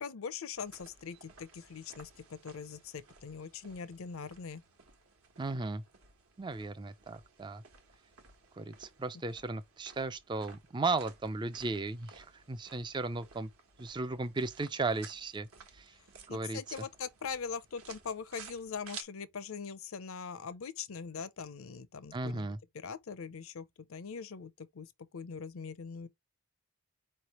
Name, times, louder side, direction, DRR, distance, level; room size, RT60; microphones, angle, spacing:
voice 1, 0.0-4.6 16.3-22.5 22.7-26.1, left 6 dB, 70° left, 0.6 m, -42 dB
sound 1, 0.5-19.0, right 5 dB, 75° right, 1.2 m, -56 dB
voice 2, 5.4-5.8 6.4-7.6 8.6-13.5 13.8-15.5 15.7-16.0 16.3-16.6 22.1-22.6, right 3 dB, 20° right, 0.3 m, -36 dB
4.7 x 3.2 x 2.9 m
head